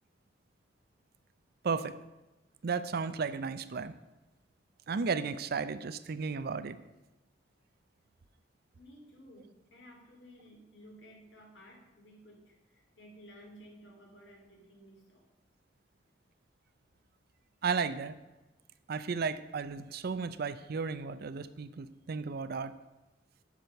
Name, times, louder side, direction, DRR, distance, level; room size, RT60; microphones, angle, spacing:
voice 1, 1.6-2.0 2.6-3.9 4.9-6.8 17.6-18.2 18.9-22.7, right 5 dB, 60° right, 13 dB, 0.5 m, -34 dB
voice 2, 8.7-15.2, equal, 75° left, 0 dB, 2.8 m, -55 dB
10.5 x 6.2 x 5.7 m, 1.1 s
head